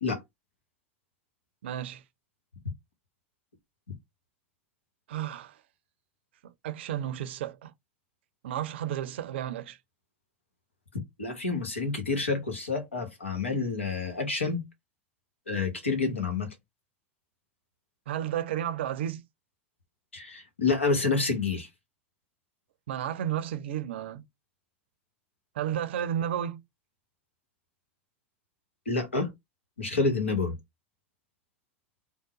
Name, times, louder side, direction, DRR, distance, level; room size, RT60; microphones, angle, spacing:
voice 1, 1.6-2.0 5.1-5.5 6.4-7.7 8.4-9.8 18.1-19.2 22.9-24.2 25.6-26.6, right 10 dB, 65° right, 0.5 m, -32 dB
voice 2, 11.2-14.6 15.5-16.5 20.1-21.7 28.9-29.3 29.8-30.5, left 4 dB, 85° left, 1.1 m, -28 dB
3.6 x 2.1 x 2.9 m
figure-of-eight pair, 80°, 6 cm